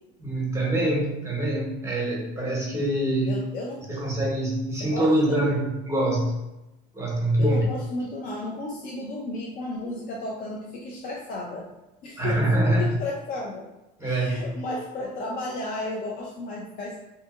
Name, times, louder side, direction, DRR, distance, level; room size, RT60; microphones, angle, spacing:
voice 1, 0.2-3.4 3.9-6.4 7.0-7.7 12.2-12.9 14.0-14.5, right 1 dB, 15° right, -3 dB, 0.9 m, -24 dB
voice 2, 3.3-3.9 4.8-5.4 7.4-11.6 12.0-13.6 14.0-17.0, left 2 dB, 45° left, -2 dB, 0.5 m, -33 dB
2.6 x 2.6 x 2.4 m, 0.97 s
supercardioid pair, 105°, 21 cm